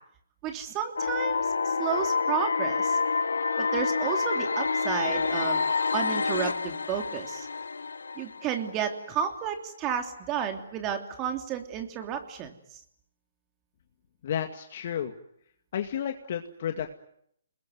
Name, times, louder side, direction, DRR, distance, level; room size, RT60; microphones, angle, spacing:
voice 1, 0.4-3.0 3.6-5.6 5.9-7.5 8.2-12.5, right 8 dB, 25° right, 5 dB, 3.1 m, -32 dB
sound 1, 1.0-8.9, left 4 dB, 80° left, 1.6 m, -28 dB
voice 2, 14.2-15.1 15.7-16.9, left 9 dB, 50° left, 6 dB, 2.2 m, -32 dB
29.0 x 21.5 x 9.5 m, 0.73 s
hypercardioid pair, 140°, 0 cm